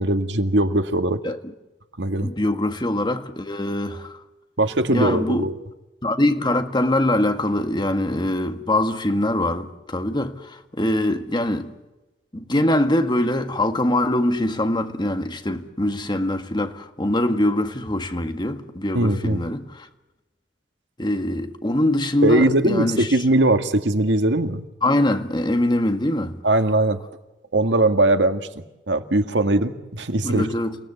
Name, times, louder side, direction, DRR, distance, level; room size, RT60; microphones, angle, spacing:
voice 1, 0.0-1.2 2.0-2.3 4.6-5.5 18.9-19.4 22.2-24.6 26.4-27.0 27.5-28.5 28.9-30.5, right 1 dB, 85° right, 1.8 m, -20 dB
voice 2, 2.2-4.2 4.9-5.5 6.0-11.7 12.3-19.9 21.0-23.2 24.8-26.4 30.2-30.8, left 1 dB, 25° left, 1.8 m, -23 dB
29.5 x 18.0 x 8.2 m
head